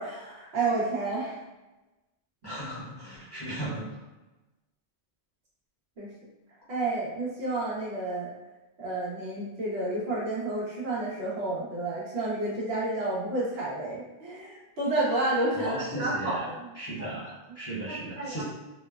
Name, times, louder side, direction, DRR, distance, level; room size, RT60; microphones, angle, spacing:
voice 1, 0.0-1.4 6.0-6.1 6.7-8.3 8.8-16.7 17.0-17.1 17.9-18.4, right 2 dB, 75° right, -6 dB, 1.1 m, -30 dB
voice 2, 2.4-4.0 15.5-16.5 16.8-18.4, right 1 dB, 25° left, -10 dB, 0.8 m, -36 dB
3.0 x 2.1 x 2.3 m, 1.1 s
omnidirectional pair, 1.1 m